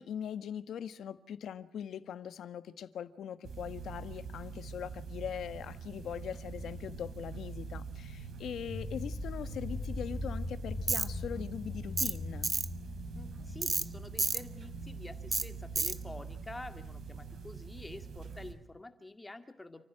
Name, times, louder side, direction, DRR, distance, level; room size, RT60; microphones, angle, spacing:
voice 1, 0.0-12.5, left 8 dB, 75° left, 1.5 m, -41 dB
sound 1, 3.4-18.5, right 5 dB, 60° right, 4.4 m, -45 dB
sound 2, 6.5-15.0, left 2 dB, 5° right, 4.2 m, -42 dB
Tools, 10.9-11.1 12.0-12.2 12.4-12.7 13.6-13.9 14.2-14.4 15.3-15.5 15.8-16.0, right 4 dB, 25° right, 1.1 m, -30 dB
voice 2, 13.2-19.8, left 2 dB, 10° left, 2.1 m, -48 dB
30.0 x 15.5 x 9.0 m
wide cardioid pair, 175°, 0 cm